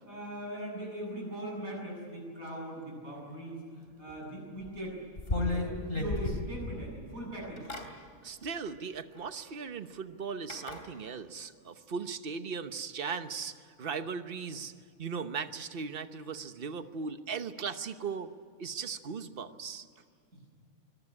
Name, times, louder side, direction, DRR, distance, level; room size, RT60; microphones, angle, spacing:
voice 1, 0.0-5.0 5.3-7.7, right 1 dB, 75° right, -3 dB, 8.4 m, -40 dB
sound 1, 4.6-4.7 5.2-6.9 7.4-7.9 9.2-9.3 10.5-10.8, left 2 dB, 40° left, 3.1 m, -33 dB
voice 2, 8.2-14.7 15.0-18.3 18.6-19.8, right 5 dB, 45° right, 10 dB, 1.2 m, -38 dB
24.0 x 18.5 x 9.9 m, 2.1 s
omnidirectional pair, 1.5 m